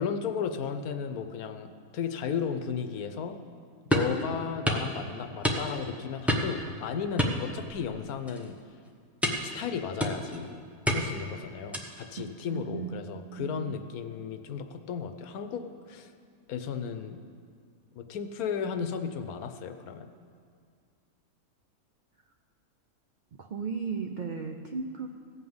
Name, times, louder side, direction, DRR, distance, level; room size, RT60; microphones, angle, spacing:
voice 1, 0.0-3.4 3.9-8.6 9.4-10.6 10.9-16.1 16.5-17.2 17.9-20.1, left 7 dB, 80° left, 9 dB, 1.1 m, -34 dB
sound 1, 3.9-4.2 4.7-4.9 5.4-5.9 6.3-6.6 7.2-7.9 8.3-8.5 9.2-9.5 10.0-10.4 10.9-11.2 11.7-12.0, equal, ahead, 0.8 m, -28 dB
voice 2, 12.2-12.9 13.3-13.8 23.4-25.1, right 5 dB, 75° right, 4 dB, 0.4 m, -36 dB
15.5 x 5.5 x 7.8 m, 2.2 s
omnidirectional pair, 1.6 m